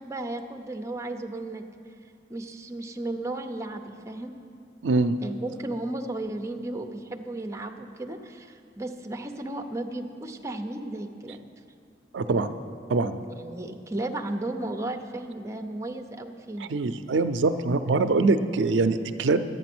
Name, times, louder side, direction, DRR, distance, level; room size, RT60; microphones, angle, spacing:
voice 1, 0.0-1.6 2.3-4.3 5.2-11.4 13.4-16.7, right 2 dB, 15° right, 4 dB, 0.6 m, -34 dB
voice 2, 4.8-5.2 12.1-12.5 12.9-13.2 16.6-19.4, right 3 dB, 85° right, 10 dB, 0.5 m, -23 dB
11.0 x 9.1 x 6.1 m, 2.4 s
head